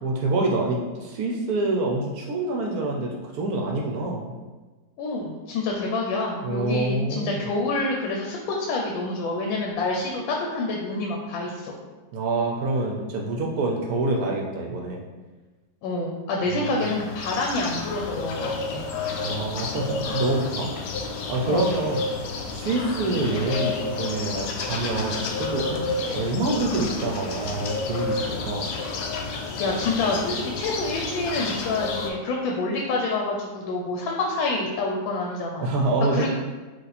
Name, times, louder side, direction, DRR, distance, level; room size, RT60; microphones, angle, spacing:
voice 1, 0.0-4.3 6.4-7.5 12.1-15.0 16.5-16.7 19.2-20.7 21.3-22.0 22.5-28.7 35.6-36.3, right 2 dB, 70° right, 0 dB, 0.9 m, -26 dB
voice 2, 5.0-11.7 15.8-18.8 21.4-21.7 29.6-35.7 36.1-36.3, left 2 dB, 90° left, 0 dB, 1.4 m, -27 dB
sound 1, 16.6-32.1, left 3 dB, 70° left, 1.0 m, -30 dB
sound 2, 25.0-30.5, left 1 dB, 50° left, 1.1 m, -45 dB
4.8 x 2.4 x 4.1 m, 1.3 s
omnidirectional pair, 2.0 m